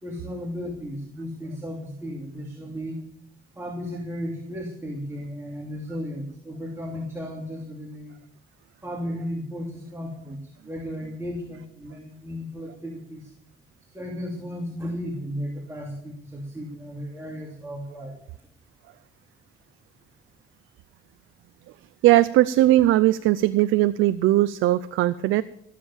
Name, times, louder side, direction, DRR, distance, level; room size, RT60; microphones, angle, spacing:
voice 1, 0.0-3.0 3.5-8.2 8.8-13.3 13.9-18.2, equal, 15° right, -1 dB, 2.9 m, -35 dB
voice 2, 22.0-25.4, right 15 dB, 90° right, 13 dB, 0.5 m, -19 dB
18.5 x 7.5 x 7.2 m, 0.73 s
cardioid pair, 90°, 20 cm